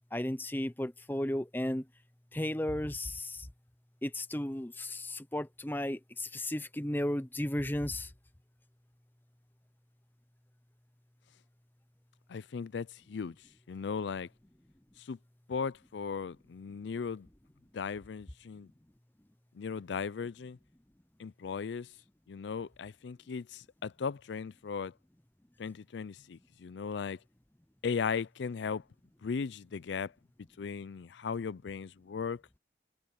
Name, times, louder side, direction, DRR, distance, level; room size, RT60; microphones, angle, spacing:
voice 1, 0.1-1.9 2.3-3.5 4.0-8.1, left 1 dB, 10° left, 0.6 m, -34 dB
voice 2, 12.3-13.3 13.7-14.3 15.1-15.2 15.5-17.3 17.7-18.7 19.5-20.6 21.2-21.9 22.3-24.9 25.6-27.2 27.8-28.8 29.2-30.1 30.6-32.4, left 5 dB, 85° left, 0.4 m, -37 dB
head